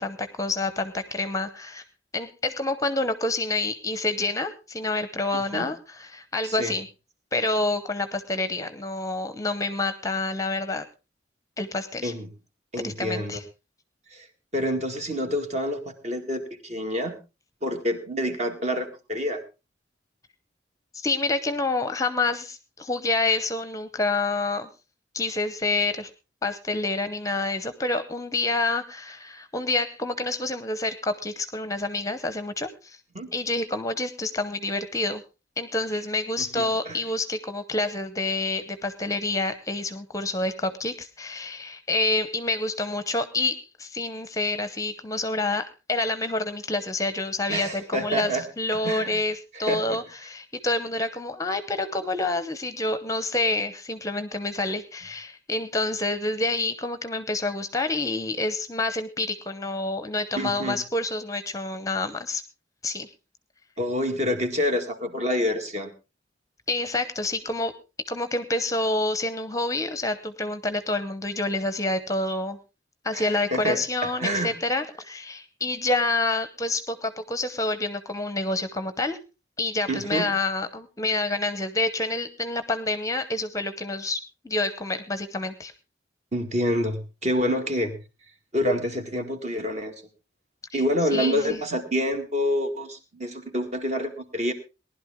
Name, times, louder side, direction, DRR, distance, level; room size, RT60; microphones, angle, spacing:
voice 1, 0.0-1.8 2.1-6.9 7.3-10.8 11.6-12.1 12.8-13.4 20.9-24.7 25.1-26.1 26.4-33.0 33.3-35.2 35.6-62.4 62.8-63.1 66.7-67.7 68.1-72.6 73.0-79.2 79.6-85.7 90.7-90.8 91.1-91.6, left 2 dB, 20° left, 11 dB, 0.8 m, -28 dB
voice 2, 5.3-5.7 6.4-6.7 12.0-12.3 12.7-13.4 14.1-14.3 14.5-17.1 17.6-19.4 33.1-33.3 36.6-37.0 47.5-48.4 48.8-49.2 49.5-50.0 60.4-60.8 63.8-65.9 73.1-74.5 79.9-80.3 86.3-88.0 88.5-89.9 90.7-94.5, equal, 40° right, 6 dB, 2.0 m, -27 dB
19.0 x 11.5 x 3.6 m, 0.30 s
head